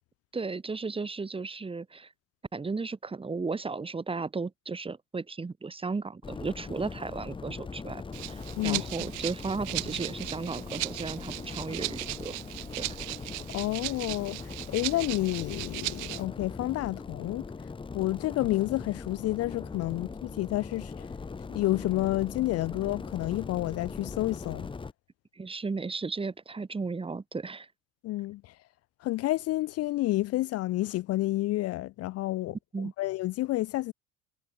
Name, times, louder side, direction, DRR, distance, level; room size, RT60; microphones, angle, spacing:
voice 1, 0.3-2.1 2.5-12.4 12.7-12.9 25.3-27.7 32.7-32.9, right 4 dB, 15° right, 2.1 m, -35 dB
sound 1, 6.2-24.9, left 4 dB, 15° left, 1.1 m, -40 dB
Rattle (instrument), 8.1-16.2, right 28 dB, 60° right, 0.7 m, -37 dB
voice 2, 13.5-17.4 17.9-21.1 21.5-24.7 28.0-28.5 29.0-32.6 33.0-33.9, left 17 dB, 45° left, 0.6 m, -30 dB
supercardioid pair, 95°, 34 cm